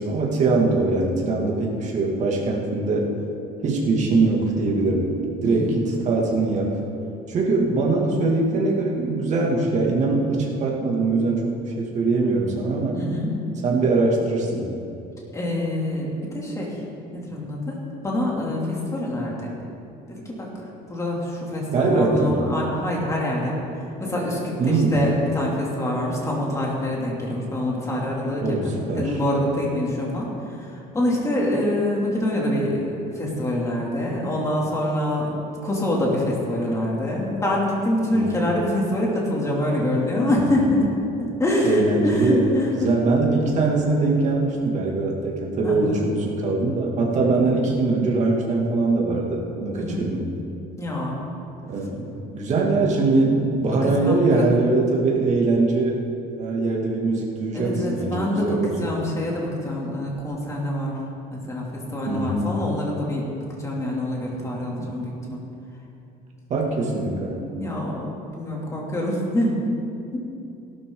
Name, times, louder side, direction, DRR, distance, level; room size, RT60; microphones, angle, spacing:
voice 1, 0.0-3.1 3.6-5.1 5.4-6.7 7.3-13.0 13.6-14.7 21.7-22.5 24.6-25.0 28.4-29.2 38.1-38.3 41.6-42.5 42.7-50.3 51.7-56.0 56.4-58.9 62.0-62.4 64.7-64.9 66.5-67.4, right 3 dB, 40° right, -2 dB, 2.5 m, -22 dB
voice 2, 5.4-5.9 12.9-13.4 15.3-16.8 17.1-19.5 20.1-20.5 20.8-35.3 35.6-40.9 41.2-42.9 45.6-46.0 47.2-47.3 49.7-50.0 50.8-51.2 53.7-54.5 57.5-61.0 61.3-63.3 63.6-65.4 67.5-69.6 70.1-70.2, left 1 dB, 15° left, -3 dB, 2.9 m, -25 dB
17.0 x 12.0 x 4.0 m, 2.7 s
cardioid pair, 150°, 18 cm